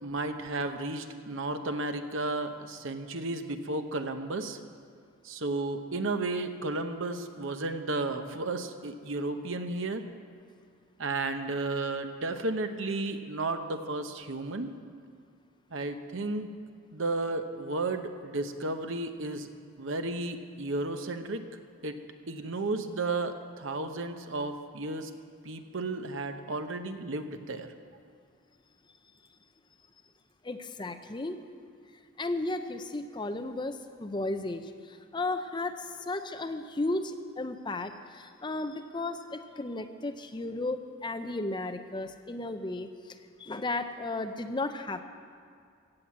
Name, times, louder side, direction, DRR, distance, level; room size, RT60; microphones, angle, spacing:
voice 1, 0.0-4.6 5.2-10.0 11.0-14.7 15.7-16.5 16.9-19.5 19.8-21.4 21.8-25.1 25.4-27.7, right 2 dB, 65° right, 7 dB, 0.9 m, -33 dB
voice 2, 30.4-31.4 32.2-45.0, left 2 dB, 20° left, 8 dB, 0.5 m, -34 dB
16.5 x 7.6 x 7.5 m, 2.2 s
head